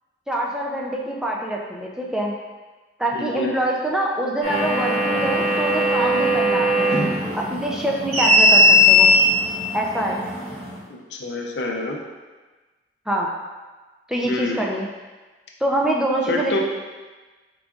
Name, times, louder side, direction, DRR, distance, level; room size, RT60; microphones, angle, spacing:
voice 1, 0.3-2.3 3.0-6.9 7.3-9.1 9.7-10.2 13.1-13.3 14.1-14.9 15.6-16.6, right 1 dB, 5° right, -2 dB, 0.4 m, -25 dB
voice 2, 3.1-3.5 10.9-12.0 14.2-14.6 16.3-16.6, left 2 dB, 70° left, 1 dB, 0.6 m, -27 dB
sound 1, 4.4-10.8, left 1 dB, 35° right, 0.9 m, -19 dB
4.8 x 3.8 x 2.4 m, 1.3 s
head